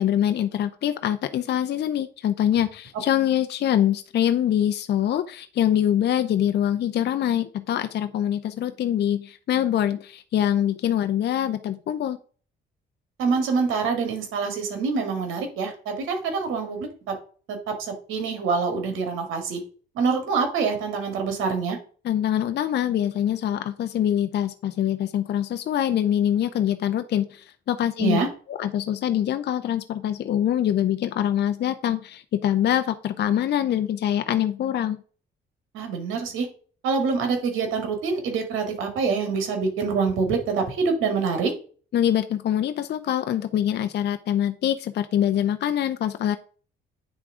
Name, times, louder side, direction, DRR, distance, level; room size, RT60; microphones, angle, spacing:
voice 1, 0.0-12.2 22.0-28.2 28.5-35.0 41.9-46.4, left 10 dB, 60° left, 9 dB, 0.6 m, -24 dB
voice 2, 13.2-17.1 17.5-19.6 20.0-21.8 28.0-28.3 35.7-36.5 36.8-41.5, right 5 dB, 90° right, 5 dB, 2.0 m, -25 dB
8.9 x 3.6 x 4.8 m, 0.41 s
cardioid pair, 90°, 20 cm